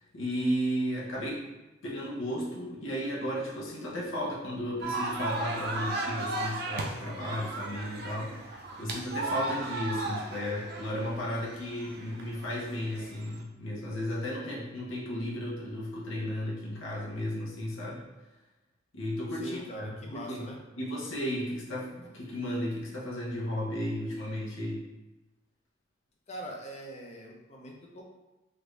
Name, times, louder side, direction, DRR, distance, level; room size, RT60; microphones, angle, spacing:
voice 1, 0.0-1.4 1.8-18.0 18.9-20.5 20.8-24.9, equal, 75° left, -5 dB, 0.8 m, -34 dB
sound 1, 4.8-13.4, right 2 dB, 50° right, 0.4 m, -36 dB
voice 2, 19.4-20.6 26.3-28.0, equal, 35° left, -1 dB, 0.5 m, -42 dB
3.3 x 2.5 x 3.1 m, 1.1 s
head